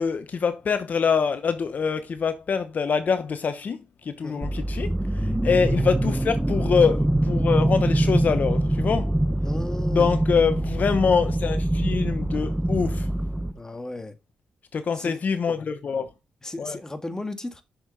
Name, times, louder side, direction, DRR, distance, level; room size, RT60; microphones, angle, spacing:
voice 1, 0.0-9.2 9.9-13.1 14.7-16.1 16.6-16.8, left 6 dB, 55° left, 1.0 m, -25 dB
sound 1, 4.4-13.5, right 1 dB, 10° right, 0.9 m, -24 dB
voice 2, 9.4-10.1 13.5-14.2 14.9-15.2 16.4-17.6, left 2 dB, 20° left, 1.7 m, -35 dB
7.9 x 6.5 x 3.9 m
cardioid pair, 65°, 3 cm